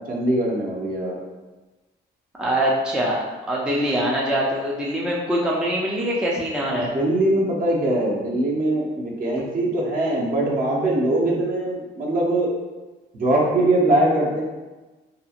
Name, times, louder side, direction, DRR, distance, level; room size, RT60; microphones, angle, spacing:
voice 1, 0.1-1.2 6.8-12.5 13.1-14.4, right 1 dB, 45° right, -3 dB, 0.7 m, -22 dB
voice 2, 2.4-3.2 3.5-6.9, equal, 5° right, -4 dB, 0.4 m, -23 dB
2.8 x 2.3 x 2.4 m, 1.2 s
cardioid pair, 90°, 20 cm